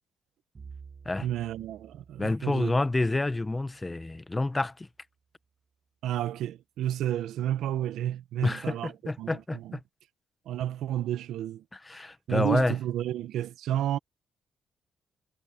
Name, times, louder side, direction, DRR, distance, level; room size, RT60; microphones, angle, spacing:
Bowed string instrument, 0.5-4.7, right 5 dB, 35° right, 1.3 m, -52 dB
voice 1, 1.2-2.7 6.0-9.8 10.5-11.6 12.3-14.0, right 12 dB, 80° right, 1.1 m, -31 dB
voice 2, 2.2-4.9 8.4-9.8 11.9-12.7, left 2 dB, 15° left, 1.1 m, -28 dB
cardioid pair, 90°, 0 cm